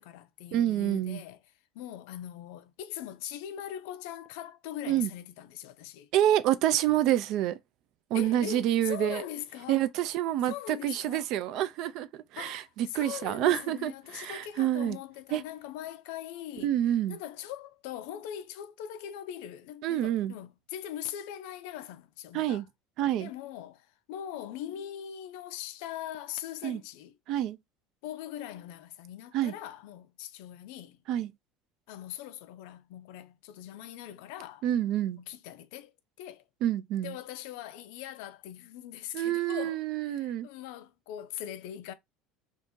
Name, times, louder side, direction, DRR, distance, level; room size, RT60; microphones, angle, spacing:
voice 1, 0.0-1.4 1.7-6.1 8.1-9.9 10.5-11.3 12.4-16.7 17.1-22.6 23.2-27.2 28.0-31.0 31.9-34.7 35.2-36.4 37.0-41.9, left 11 dB, 75° left, 0.4 m, -41 dB
voice 2, 0.5-1.2 4.9-5.1 6.1-7.6 8.1-9.2 9.7-15.0 15.3-15.4 16.6-17.2 19.8-20.3 22.3-22.7 23.0-23.3 26.6-26.8 27.3-27.6 29.3-29.5 31.1-31.3 34.6-35.2 36.6-37.2 39.1-40.5, right 12 dB, 50° right, 0.3 m, -28 dB
2.7 x 2.5 x 3.6 m
cardioid pair, 170°, 0 cm